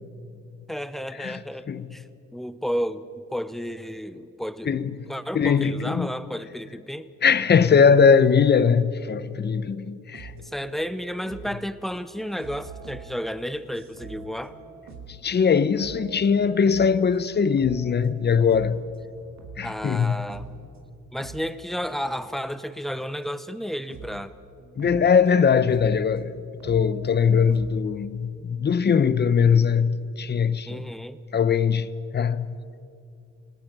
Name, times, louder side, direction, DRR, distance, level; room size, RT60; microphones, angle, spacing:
voice 1, 0.7-2.1 2.3-4.8 5.1-7.1 10.4-14.6 19.6-20.5 21.1-24.3 30.7-31.2, equal, ahead, 0.8 m, -32 dB
voice 2, 4.7-5.0 5.3-6.1 7.2-10.3 15.1-18.8 19.6-20.2 24.8-26.3 26.6-30.8 31.3-32.6, left 6 dB, 35° left, 0.8 m, -21 dB
sound 1, 10.1-11.6 11.9-20.8 21.2-22.3 23.2-23.3 23.9-24.3 24.6-26.2 26.6-27.9, right 3 dB, 65° right, 2.7 m, -44 dB
28.0 x 17.5 x 5.4 m
cardioid pair, 90°, 30 cm